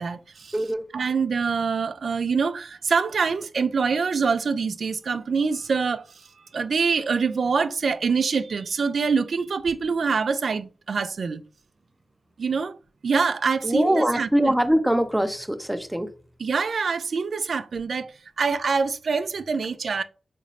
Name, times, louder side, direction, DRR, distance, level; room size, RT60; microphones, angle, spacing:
voice 1, 0.0-0.6 0.9-6.3 6.5-11.4 12.4-12.8 13.0-14.5 16.4-20.0, right 5 dB, 70° right, 0.3 m, -25 dB
voice 2, 13.6-16.1, equal, 10° right, 0.6 m, -22 dB
3.8 x 2.5 x 3.1 m
cardioid pair, 45°, 0 cm